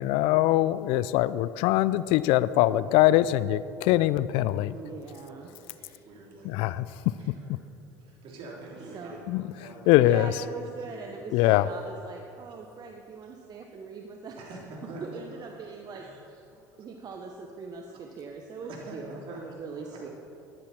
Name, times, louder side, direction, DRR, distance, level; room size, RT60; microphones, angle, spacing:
voice 1, 0.0-4.8 6.4-6.9 9.3-10.3 11.3-11.7, left 15 dB, 65° left, 17 dB, 0.4 m, -23 dB
voice 2, 4.7-5.5 5.7-6.0 8.9-9.2 10.0-14.4 15.0-16.0 16.8-20.1, right 5 dB, 40° right, 2 dB, 1.2 m, -41 dB
voice 3, 5.3-5.7 6.0-6.8 7.2-7.5 8.0-9.8 10.8-10.9 11.4-11.6 14.4-15.5 15.9-16.2 16.5-16.6 18.6-20.1, right 2 dB, 60° right, -2 dB, 3.7 m, -45 dB
14.5 x 11.5 x 4.4 m, 2.7 s
hypercardioid pair, 75°, 10 cm